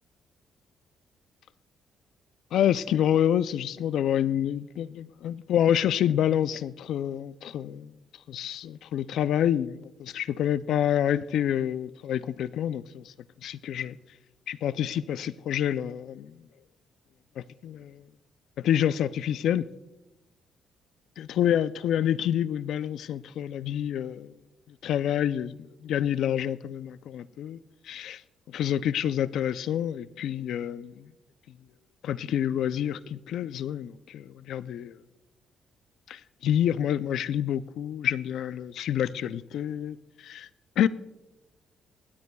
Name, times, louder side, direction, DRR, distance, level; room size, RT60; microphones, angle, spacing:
voice 1, 2.5-7.9 8.3-13.1 13.4-14.0 14.5-16.4 17.4-18.0 18.6-19.7 21.2-24.3 24.7-28.2 28.5-31.1 32.0-35.0 36.1-40.5 40.8-40.9, left 10 dB, 75° left, 0.4 m, -28 dB
24.5 x 12.5 x 2.3 m
cardioid pair, 90°, 0 cm